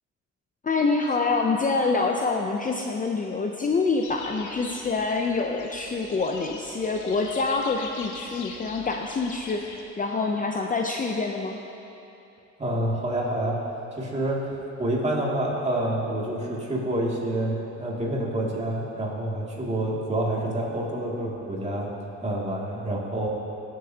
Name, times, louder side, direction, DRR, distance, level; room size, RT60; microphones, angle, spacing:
voice 1, 0.6-11.6, left 4 dB, 25° left, 2 dB, 0.6 m, -26 dB
sound 1, 4.0-9.8, left 4 dB, 80° left, 1.0 m, -43 dB
voice 2, 12.6-21.9 22.2-23.3, right 1 dB, 20° right, -4 dB, 2.4 m, -28 dB
16.5 x 7.6 x 2.8 m, 2.8 s
cardioid pair, 90°, 30 cm